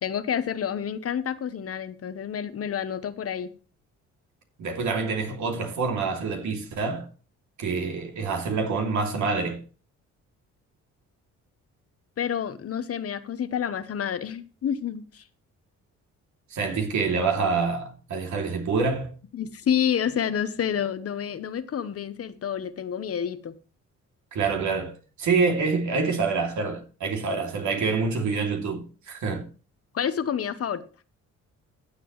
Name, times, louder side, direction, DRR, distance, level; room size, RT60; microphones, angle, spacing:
voice 1, 0.0-3.5 12.2-15.2 19.3-23.5 29.9-30.8, left 8 dB, 50° left, 1.0 m, -29 dB
voice 2, 4.6-7.1 7.6-9.6 16.5-19.1 24.3-29.5, right 4 dB, 70° right, 2.8 m, -26 dB
15.0 x 7.7 x 3.2 m
cardioid pair, 90°, 30 cm